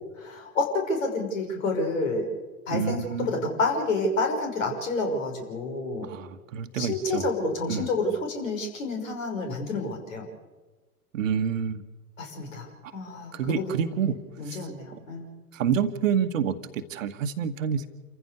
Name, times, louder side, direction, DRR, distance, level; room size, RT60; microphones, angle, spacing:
voice 1, 0.2-2.3 2.7-6.1 6.7-10.3 12.2-13.9 14.4-15.3, left 2 dB, 60° left, 4 dB, 5.9 m, -29 dB
voice 2, 2.7-3.5 6.0-7.2 7.7-7.9 11.1-11.8 13.3-14.2 14.4-14.6 15.5-17.9, right 7 dB, 60° right, 10 dB, 1.6 m, -28 dB
28.5 x 15.0 x 6.8 m, 1.3 s
figure-of-eight pair, 90°, 44 cm